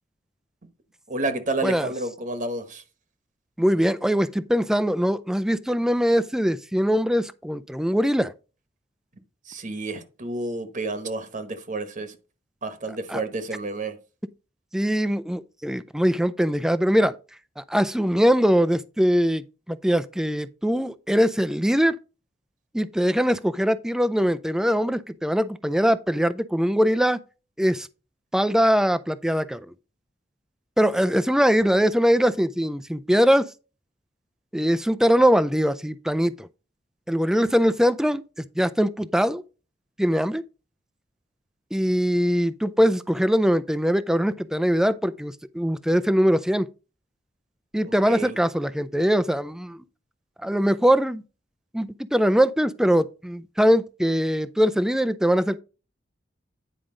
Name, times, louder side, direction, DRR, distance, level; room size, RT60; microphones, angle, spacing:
voice 1, 1.1-2.8 9.4-12.2 12.6-14.0 47.8-48.4, right 2 dB, 45° right, 1.1 m, -30 dB
voice 2, 3.6-8.3 13.1-13.2 14.7-17.2 17.6-22.0 22.7-27.2 27.6-27.9 28.3-29.6 30.8-33.5 34.5-36.5 37.1-38.2 38.6-39.4 40.0-40.4 41.7-46.7 47.7-49.8 50.4-51.2 51.7-55.6, equal, 5° right, 0.4 m, -22 dB
9.6 x 5.0 x 3.8 m
head